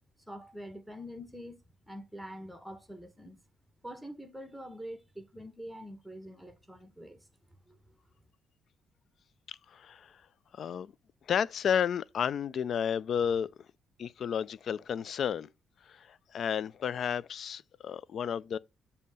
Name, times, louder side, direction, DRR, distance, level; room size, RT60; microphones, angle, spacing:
voice 1, 0.3-1.6 1.9-3.4 3.8-7.3 7.7-8.1, equal, ahead, 1.0 m, -45 dB
voice 2, 9.5-10.1 10.5-10.9 11.3-13.5 14.0-15.5 15.9-18.6, left 8 dB, 60° left, 0.3 m, -32 dB
7.1 x 2.8 x 5.4 m
cardioid pair, 90°, 0 cm